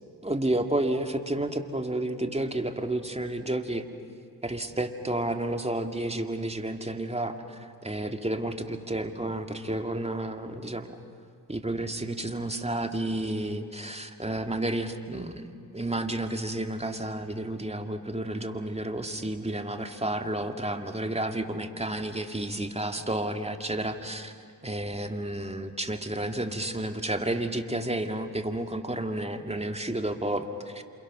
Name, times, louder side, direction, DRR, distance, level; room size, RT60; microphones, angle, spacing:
voice 1, 0.2-3.8 4.4-7.4 7.8-11.0 11.5-15.5 15.7-24.3 24.6-30.8, right 1 dB, 15° right, 6 dB, 2.3 m, -31 dB
28.5 x 27.5 x 6.3 m, 2.5 s
cardioid pair, 50°, 41 cm